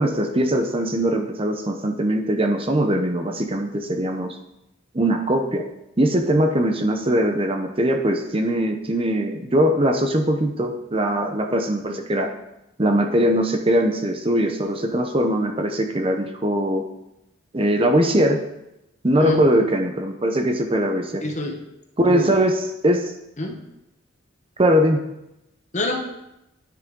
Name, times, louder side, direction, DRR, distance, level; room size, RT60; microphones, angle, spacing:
voice 1, 0.0-4.3 4.9-5.6 6.0-12.3 12.8-16.8 17.5-18.4 19.0-21.2 22.0-23.0 24.6-25.0, right 1 dB, 30° right, 4 dB, 0.9 m, -21 dB
voice 2, 21.2-21.6 22.0-22.4 23.4-23.6 25.7-26.1, left 1 dB, 35° left, 3 dB, 1.3 m, -26 dB
10.0 x 9.6 x 3.8 m, 0.87 s
head